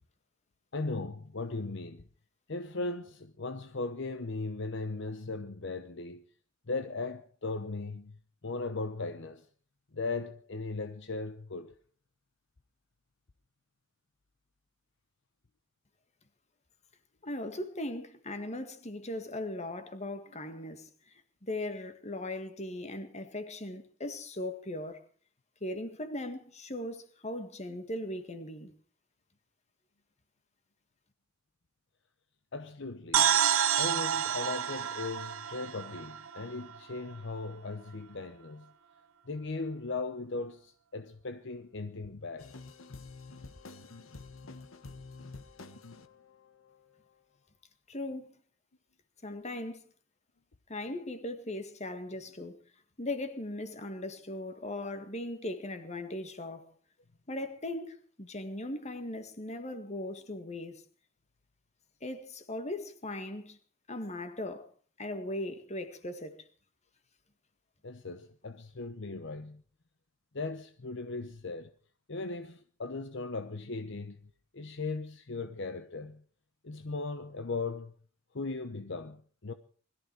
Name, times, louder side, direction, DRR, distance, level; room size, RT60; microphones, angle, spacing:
voice 1, 0.7-2.0 2.5-6.2 6.7-8.2 8.4-9.5 9.9-11.8 32.5-33.4 33.8-38.7 39.3-42.5 67.8-69.6 70.3-71.7 72.1-76.2 76.6-77.9 78.3-79.5, left 3 dB, 60° left, 0.9 m, -38 dB
voice 2, 17.2-21.1 21.4-25.0 25.6-28.7 47.9-48.4 49.2-49.9 50.7-52.6 53.0-56.7 57.3-60.8 62.0-63.6 63.9-64.7 65.0-66.4, left 1 dB, 35° left, 1.8 m, -38 dB
sound 1, 33.1-36.8, right 9 dB, 85° right, 1.2 m, -28 dB
sound 2, 42.4-46.9, left 3 dB, 85° left, 1.4 m, -49 dB
21.0 x 14.0 x 4.7 m
head